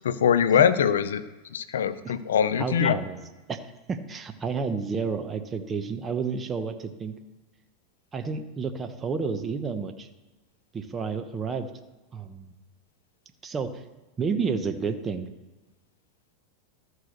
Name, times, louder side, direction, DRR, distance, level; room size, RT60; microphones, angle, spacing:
voice 1, 0.0-1.2 1.5-3.0, left 8 dB, 90° left, 13 dB, 0.6 m, -22 dB
voice 2, 2.6-3.2 3.5-3.6 3.9-7.1 8.1-10.1 10.7-11.7 12.1-12.5 13.4-13.8 14.2-15.3, right 5 dB, 25° right, 8 dB, 1.1 m, -30 dB
13.0 x 4.8 x 6.6 m, 1.2 s
hypercardioid pair, 110°, 0 cm